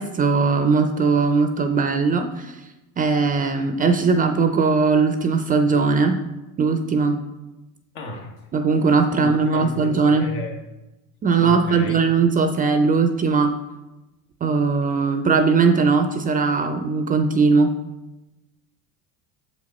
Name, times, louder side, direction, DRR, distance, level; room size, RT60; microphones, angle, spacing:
voice 1, 0.0-2.6 3.0-6.2 6.6-7.2 8.5-10.3 11.2-13.5 14.4-17.7, right 4 dB, 25° right, 7 dB, 0.3 m, -19 dB
voice 2, 7.9-8.3 9.2-10.6 11.4-12.0, left 2 dB, 75° left, 3 dB, 1.4 m, -33 dB
6.9 x 4.9 x 4.1 m, 1.0 s
cardioid pair, 130°, 37 cm